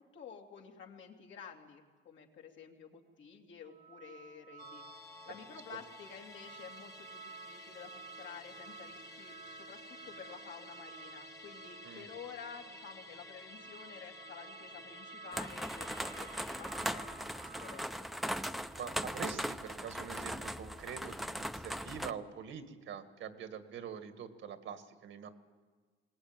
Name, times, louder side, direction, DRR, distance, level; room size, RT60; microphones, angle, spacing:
voice 1, 0.0-4.8 5.3-17.9, left 6 dB, 70° left, 1 dB, 3.0 m, -51 dB
sound 1, 3.6-21.8, right 6 dB, 35° right, 1.0 m, -55 dB
Musical instrument, 4.6-19.3 19.6-19.7, left 1 dB, 15° left, 1.4 m, -53 dB
sound 2, 15.3-22.1, equal, ahead, 0.8 m, -39 dB
voice 2, 18.7-25.3, right 7 dB, 75° right, 9 dB, 1.9 m, -45 dB
21.5 x 19.0 x 9.1 m, 1.4 s
cardioid pair, 90°, 20 cm